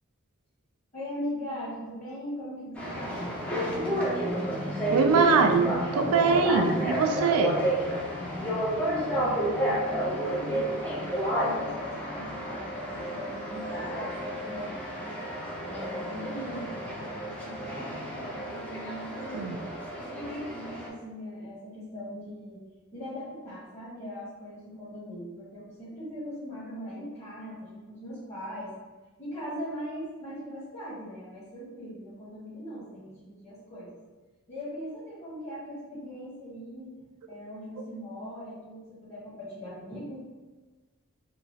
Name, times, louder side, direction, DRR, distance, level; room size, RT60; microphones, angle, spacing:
voice 1, 0.9-3.3 8.3-15.3 15.6-19.5 20.0-22.6 22.9-28.7 29.2-34.0 34.5-36.9 37.3-40.2, equal, 30° left, -10 dB, 1.2 m, -40 dB
sound 1, 2.8-20.9, right 1 dB, 5° left, 0.4 m, -31 dB
voice 2, 4.9-7.6 19.3-19.6, right 5 dB, 85° right, 5 dB, 0.3 m, -23 dB
2.9 x 2.3 x 2.7 m, 1.2 s
head